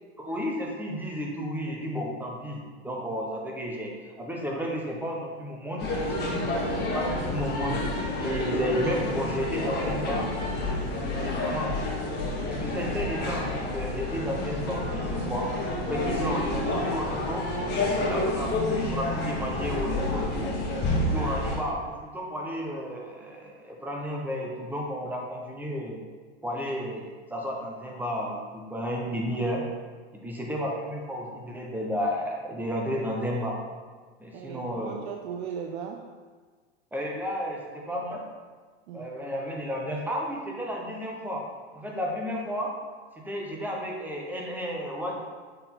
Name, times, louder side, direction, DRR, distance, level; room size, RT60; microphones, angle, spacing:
voice 1, 0.2-5.9 6.8-7.9 8.2-10.3 11.1-11.8 12.5-15.5 15.8-17.5 18.0-20.5 21.0-26.0 26.4-29.6 30.2-33.6 34.2-35.1 36.9-38.2 38.9-41.5 41.7-42.7 43.2-45.2, equal, 5° right, -2 dB, 0.9 m, -32 dB
sound 1, 5.8-21.6, left 1 dB, 30° left, 1.6 m, -29 dB
voice 2, 6.3-6.7 25.0-25.1 34.3-36.0 38.9-39.1, right 7 dB, 65° right, 3 dB, 0.6 m, -38 dB
6.6 x 4.0 x 3.8 m, 1.5 s
hypercardioid pair, 120°, 34 cm